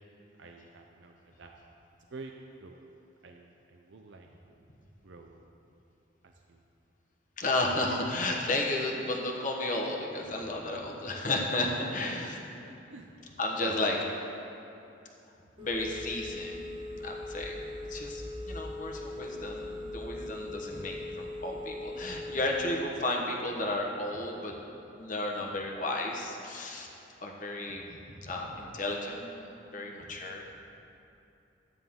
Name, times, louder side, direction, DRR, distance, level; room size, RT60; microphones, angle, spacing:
voice 1, 0.4-1.6 2.1-2.3 2.6-2.8 3.2-4.7 5.0-5.5 6.2-6.6 12.6-13.1 13.6-14.1, right 3 dB, 65° right, 2 dB, 0.6 m, -47 dB
voice 2, 7.4-12.4 13.4-14.0 15.6-16.7 17.0-17.6 17.9-24.6 25.0-26.9 27.2-30.5, left 2 dB, 40° left, 0 dB, 1.1 m, -33 dB
Telephone, 15.6-22.6, left 2 dB, 25° right, 1.4 m, -40 dB
12.5 x 9.4 x 3.7 m, 2.8 s
head